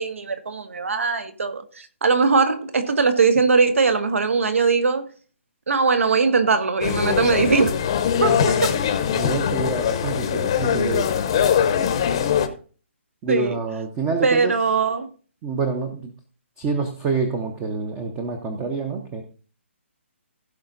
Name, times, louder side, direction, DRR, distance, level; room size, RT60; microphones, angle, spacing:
voice 1, 0.0-5.1 5.7-7.8 8.2-8.7 13.3-13.6 14.2-15.1, right 4 dB, 85° right, 2.0 m, -20 dB
sound 1, 6.8-12.5, left 8 dB, 25° left, 0.8 m, -22 dB
voice 2, 9.1-11.1 13.2-14.5 15.4-16.1 16.6-19.2, right 4 dB, 10° right, 0.6 m, -27 dB
16.0 x 5.5 x 3.9 m
hypercardioid pair, 180°, 7 cm